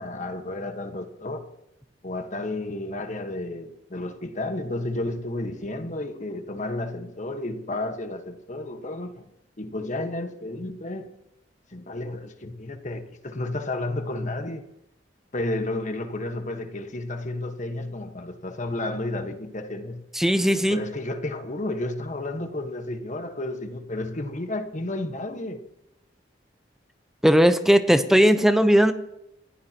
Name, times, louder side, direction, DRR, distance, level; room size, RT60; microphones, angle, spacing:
voice 1, 0.0-1.5 2.0-9.3 9.6-11.1 11.7-14.6 15.3-20.0 20.7-25.6, left 2 dB, 45° left, 1.4 m, -32 dB
voice 2, 20.2-20.8 27.2-28.9, equal, ahead, 0.8 m, -18 dB
29.0 x 15.5 x 3.0 m
head